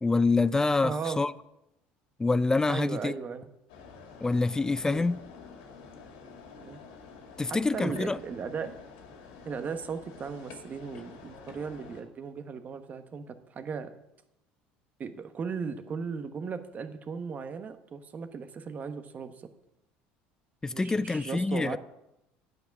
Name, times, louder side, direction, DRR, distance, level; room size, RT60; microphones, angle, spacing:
voice 1, 0.0-1.3 2.2-3.1 4.2-5.2 7.4-8.2 20.6-21.8, left 3 dB, 15° left, 0.3 m, -26 dB
voice 2, 0.8-1.2 2.7-3.5 4.8-5.1 6.6-6.8 7.5-8.7 9.4-13.9 15.0-19.5 20.7-21.8, right 5 dB, 35° right, 1.1 m, -37 dB
sound 1, 3.7-12.0, left 5 dB, 85° left, 2.2 m, -49 dB
9.5 x 7.9 x 5.9 m
supercardioid pair, 100°, 4 cm